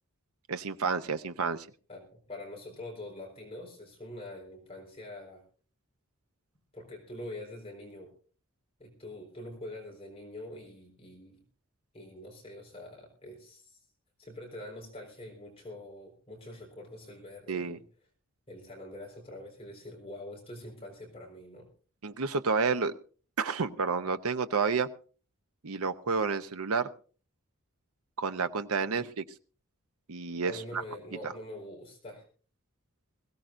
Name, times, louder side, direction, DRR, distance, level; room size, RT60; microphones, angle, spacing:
voice 1, 0.5-1.7 17.5-17.8 22.0-23.0 23.4-24.9 25.6-26.9 28.2-29.0 30.1-30.8 31.2-31.3, right 5 dB, 85° right, 10 dB, 0.8 m, -30 dB
voice 2, 1.9-5.4 6.7-8.1 8.8-11.4 11.9-13.8 14.2-17.8 18.5-21.7 28.9-29.0 30.5-32.2, left 1 dB, 25° left, 0 dB, 4.1 m, -45 dB
21.5 x 16.5 x 2.6 m, 0.39 s
head